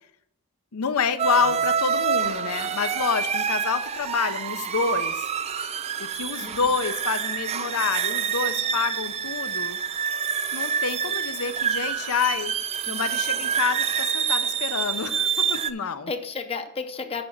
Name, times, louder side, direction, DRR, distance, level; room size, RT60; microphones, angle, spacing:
voice 1, 0.7-5.3 6.0-9.8 10.5-12.5 12.9-16.1, left 6 dB, 75° left, 11 dB, 0.6 m, -28 dB
sound 1, 1.2-15.7, right 7 dB, 30° right, 0.3 m, -27 dB
voice 2, 6.4-6.8 15.8-17.2, left 4 dB, 25° left, 7 dB, 0.6 m, -33 dB
6.9 x 5.2 x 5.9 m, 0.78 s
head